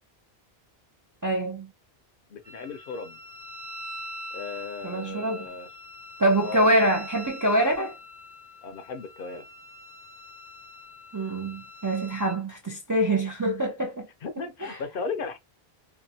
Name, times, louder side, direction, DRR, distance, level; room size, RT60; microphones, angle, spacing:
voice 1, 1.2-1.7 4.8-5.5 6.2-7.9 11.1-14.1 14.6-14.8, right 1 dB, 30° right, 0.3 m, -25 dB
voice 2, 2.3-3.2 4.3-5.7 6.4-6.7 8.6-9.5 14.2-15.4, left 4 dB, 65° left, 0.7 m, -36 dB
Wind instrument woodwind instrument, 2.4-12.4, equal, 85° right, 1.0 m, -43 dB
2.8 x 2.3 x 2.6 m
omnidirectional pair, 1.1 m